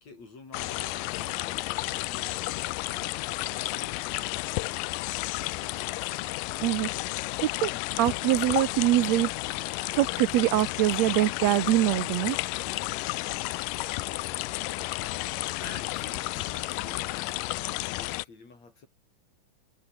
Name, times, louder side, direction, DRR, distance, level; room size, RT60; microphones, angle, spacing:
voice 1, 0.0-2.6 7.7-7.8 15.6-18.9, left 3 dB, 50° left, 7.2 m, -49 dB
sound 1, 0.5-18.3, left 20 dB, 80° left, 2.1 m, -32 dB
voice 2, 7.4-7.7 8.0-9.3 10.0-12.4, right 15 dB, 80° right, 1.5 m, -24 dB
omnidirectional pair, 4.0 m